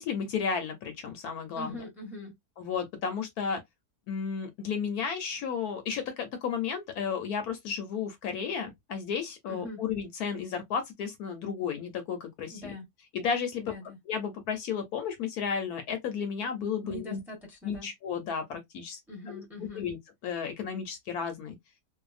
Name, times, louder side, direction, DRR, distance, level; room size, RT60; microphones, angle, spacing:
voice 1, 0.0-1.8 2.6-3.6 4.1-12.7 13.1-13.7 14.1-17.2 17.6-19.0 19.3-19.4 19.8-20.0 20.2-21.6, left 6 dB, 70° left, 1.1 m, -33 dB
voice 2, 1.5-2.4 9.5-9.8 12.5-12.9 13.6-14.0 16.8-17.9 19.1-19.9, left 2 dB, ahead, 0.8 m, -42 dB
2.7 x 2.3 x 2.4 m
omnidirectional pair, 1.8 m